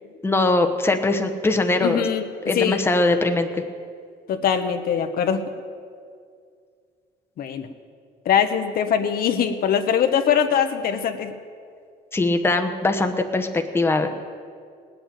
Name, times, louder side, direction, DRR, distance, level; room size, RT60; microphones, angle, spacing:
voice 1, 0.2-2.0 2.5-3.6 12.1-14.1, left 2 dB, 15° left, 5 dB, 1.0 m, -21 dB
voice 2, 1.8-2.8 4.3-5.4 7.4-7.7 8.2-11.3, left 8 dB, 60° left, 7 dB, 1.0 m, -22 dB
18.5 x 7.0 x 9.1 m, 2.3 s
cardioid pair, 110°, 17 cm